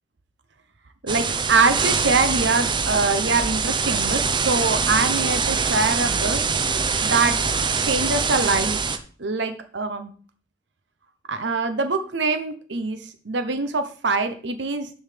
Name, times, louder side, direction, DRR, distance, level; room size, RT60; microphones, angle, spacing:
voice 1, 1.0-6.4 7.0-7.4 7.8-8.8 9.2-10.1 11.3-15.0, right 3 dB, 75° right, 9 dB, 1.0 m, -24 dB
sound 1, 1.1-9.0, right 5 dB, 25° right, 0.6 m, -23 dB
6.5 x 5.6 x 6.7 m, 0.42 s
head